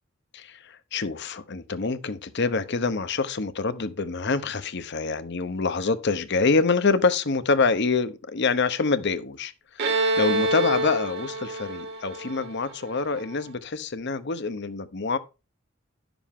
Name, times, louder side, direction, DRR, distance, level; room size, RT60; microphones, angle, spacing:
voice 1, 0.3-9.5 9.8-15.2, left 4 dB, 55° left, 0.8 m, -26 dB
Bowed string instrument, 9.8-13.3, right 2 dB, 55° right, 1.4 m, -27 dB
11.0 x 7.0 x 3.6 m
head